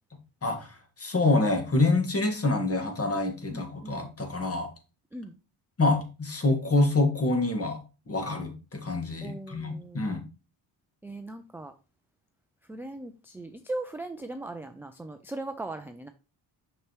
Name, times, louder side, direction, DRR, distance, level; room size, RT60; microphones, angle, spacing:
voice 1, 0.4-4.7 5.8-7.8 8.1-10.2, left 2 dB, 30° left, 1.7 m, -26 dB
voice 2, 3.5-4.1 5.1-5.4 9.2-10.2 11.0-11.7 12.7-16.1, right 2 dB, 5° right, 0.4 m, -39 dB
6.2 x 6.0 x 3.0 m
cardioid pair, 110°, 45 cm